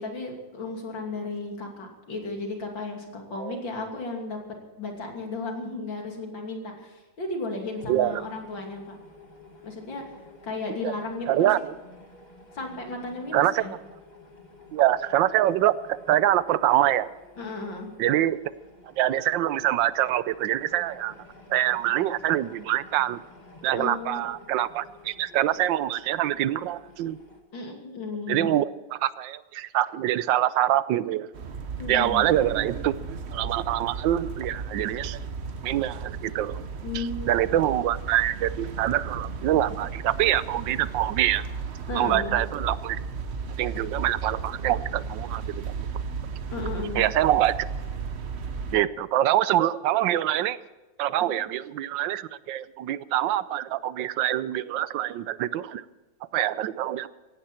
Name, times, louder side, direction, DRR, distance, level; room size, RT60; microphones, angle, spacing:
voice 1, 0.0-4.4 4.8-8.8 9.6-10.1 10.4-11.5 12.5-13.7 17.4-17.9 23.7-24.2 27.5-28.5 31.8-32.3 36.8-37.3 41.9-42.4 46.5-47.0 51.3-51.4, left 3 dB, 90° left, 2 dB, 3.5 m, -34 dB
sound 1, 7.7-27.4, left 2 dB, 25° left, 2.1 m, -51 dB
voice 2, 7.9-8.3 10.8-10.9 11.3-11.7 13.3-13.7 14.7-17.1 18.0-18.4 19.0-21.1 21.5-23.2 23.6-27.2 28.3-31.3 31.9-32.9 33.3-35.2 35.6-36.6 36.9-41.4 41.9-43.0 43.6-45.9 47.0-47.7 48.7-50.6 51.0-55.8 56.3-57.1, right 13 dB, 85° right, 16 dB, 1.4 m, -25 dB
sound 2, 31.3-48.8, right 5 dB, 45° right, 1.0 m, -35 dB
17.0 x 15.5 x 4.4 m, 1.2 s
omnidirectional pair, 2.0 m